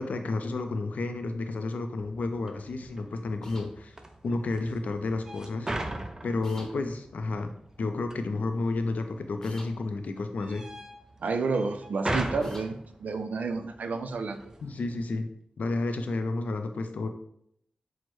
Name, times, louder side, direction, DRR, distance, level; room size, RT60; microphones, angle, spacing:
voice 1, 0.0-3.9 4.2-5.7 6.2-7.5 7.8-10.6 14.6-15.3 15.6-17.1, left 3 dB, 80° left, 7 dB, 0.4 m, -31 dB
sound 1, 2.0-15.1, right 1 dB, 25° right, 0.5 m, -40 dB
sound 2, 3.4-3.7 6.4-6.7 9.4-9.7 12.4-12.7, left 1 dB, 20° left, 0.9 m, -48 dB
voice 2, 11.2-14.5, right 4 dB, 85° right, 7 dB, 0.4 m, -30 dB
6.1 x 2.1 x 3.1 m, 0.72 s
wide cardioid pair, 75°, 3 cm